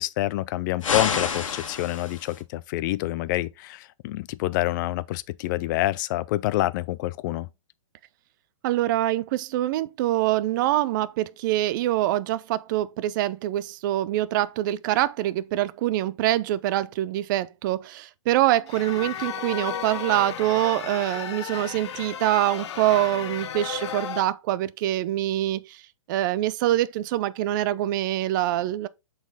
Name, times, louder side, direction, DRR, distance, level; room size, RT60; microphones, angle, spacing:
voice 1, 0.0-7.5, left 17 dB, 35° left, 0.4 m, -27 dB
sound 1, 0.8-2.4, left 6 dB, 75° left, 1.5 m, -28 dB
voice 2, 8.6-25.8 26.1-28.9, right 14 dB, 40° right, 0.4 m, -25 dB
sound 2, 18.7-24.2, left 8 dB, 55° left, 0.9 m, -34 dB
7.1 x 4.1 x 3.9 m
hypercardioid pair, 140°, 17 cm